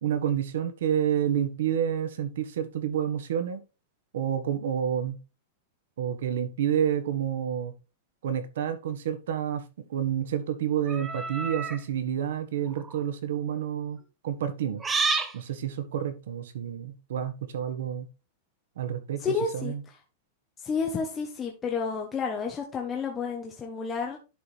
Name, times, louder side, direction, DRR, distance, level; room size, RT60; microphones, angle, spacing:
voice 1, 0.0-3.6 4.1-5.2 6.0-7.7 8.2-14.8 15.3-18.1 18.8-19.8, right 9 dB, 80° right, 1.5 m, -29 dB
sound 1, 10.9-11.8 12.7-13.0 14.8-15.3, right 4 dB, 15° right, 0.9 m, -29 dB
voice 2, 19.2-19.7 20.6-24.2, left 5 dB, 15° left, 1.1 m, -30 dB
11.0 x 4.7 x 3.4 m
supercardioid pair, 160°, 0 cm